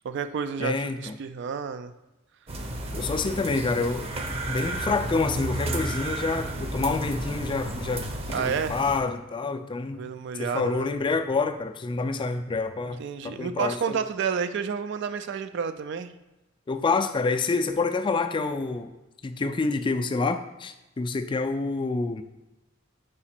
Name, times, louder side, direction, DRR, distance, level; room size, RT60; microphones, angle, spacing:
voice 1, 0.0-1.9 8.3-8.8 9.9-10.9 12.9-16.1, right 6 dB, 60° right, 10 dB, 0.3 m, -30 dB
voice 2, 0.6-1.1 2.9-4.1 4.5-8.1 8.4-10.1 10.4-14.0 16.7-18.9 19.2-22.2, left 4 dB, 25° left, 9 dB, 0.3 m, -27 dB
sound 1, 2.5-9.0, right 1 dB, 30° right, 0.7 m, -32 dB
5.0 x 4.8 x 4.4 m, 1.0 s
head